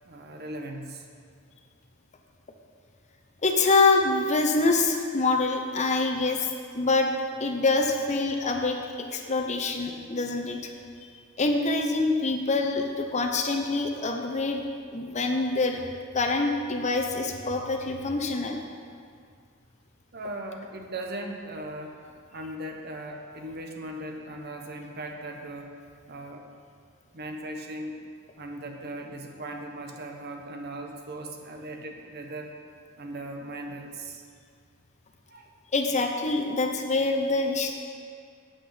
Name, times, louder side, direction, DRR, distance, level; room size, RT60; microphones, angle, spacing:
voice 1, 0.0-1.1 20.1-25.7 26.1-26.4 27.1-28.0 28.4-32.5 33.0-34.2 35.3-35.5 36.3-36.4, right 1 dB, 50° right, 3 dB, 1.0 m, -38 dB
voice 2, 3.4-7.1 7.4-8.8 9.1-10.7 11.4-14.6 14.9-15.8 16.1-18.6 35.7-37.7, left 3 dB, 35° left, 3 dB, 0.9 m, -25 dB
8.8 x 8.2 x 5.7 m, 2.2 s
head